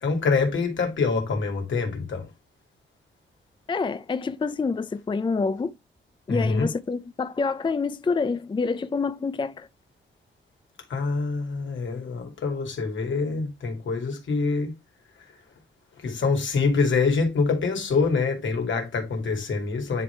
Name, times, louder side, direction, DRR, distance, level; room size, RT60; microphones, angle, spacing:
voice 1, 0.0-2.3 6.3-6.7 10.9-14.7 16.0-20.0, left 4 dB, 70° left, 2.4 m, -25 dB
voice 2, 3.7-5.7 6.3-9.7, left 4 dB, 25° left, 0.4 m, -27 dB
9.7 x 3.5 x 4.5 m
cardioid pair, 90°, 20 cm